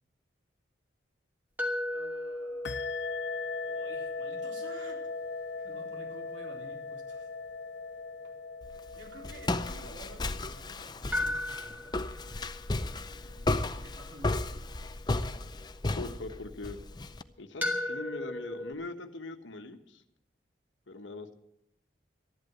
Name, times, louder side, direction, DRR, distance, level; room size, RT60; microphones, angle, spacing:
sound 1, 1.6-10.5 11.1-16.2 17.6-18.7, left 1 dB, 10° right, 2.4 m, -38 dB
voice 1, 1.9-2.8 3.6-5.1 5.5-7.3 8.2-8.3 8.9-12.0 12.3-14.6, right 1 dB, 90° right, 1 dB, 4.0 m, -52 dB
sound 2, 2.6-10.8, left 4 dB, 70° left, 0.6 m, -40 dB
Walk footsteps, 8.6-17.2, left 2 dB, 25° left, 0.5 m, -34 dB
voice 2, 16.0-16.8 17.4-20.0 20.9-21.3, left 2 dB, 90° left, 7 dB, 1.2 m, -41 dB
13.5 x 11.0 x 7.9 m, 0.79 s
head